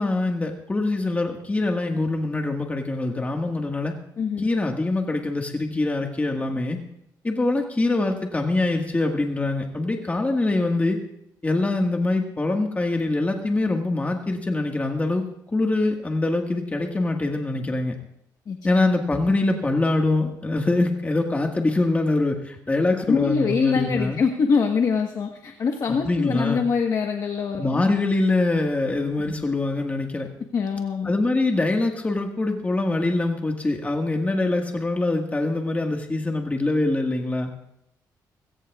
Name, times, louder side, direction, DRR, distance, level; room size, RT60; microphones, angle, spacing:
voice 1, 0.0-3.9 4.4-6.8 7.2-11.0 11.4-17.9 18.6-24.2 25.9-26.7 27.6-30.3 31.0-37.5, left 2 dB, 20° left, 3 dB, 1.7 m, -24 dB
voice 2, 4.2-4.5 18.5-18.6 23.1-27.8 29.3-29.4 30.5-31.1, left 5 dB, 55° left, 3 dB, 1.3 m, -24 dB
20.5 x 17.0 x 2.4 m, 0.78 s
cardioid pair, 90°, 7 cm